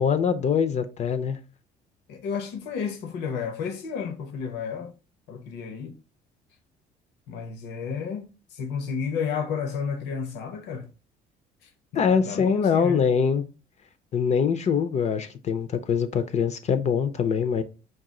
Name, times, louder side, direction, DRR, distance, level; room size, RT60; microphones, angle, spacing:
voice 1, 0.0-1.4 11.9-13.4 14.1-17.6, left 6 dB, 45° left, 0.5 m, -23 dB
voice 2, 2.1-4.9 5.3-5.9 7.3-10.9 11.9-13.0, left 6 dB, 85° left, 0.9 m, -32 dB
4.8 x 2.4 x 3.7 m
cardioid pair, 110°, 17 cm